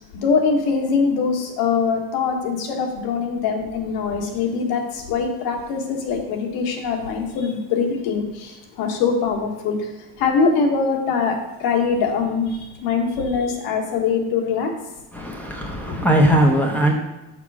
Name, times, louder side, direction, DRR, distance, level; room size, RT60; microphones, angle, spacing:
voice 1, 0.0-14.7 15.9-16.0, left 5 dB, 90° left, 2 dB, 1.5 m, -23 dB
voice 2, 15.1-16.9, right 1 dB, 5° left, -2 dB, 0.9 m, -19 dB
6.0 x 5.9 x 4.9 m, 0.99 s
cardioid pair, 130°, 37 cm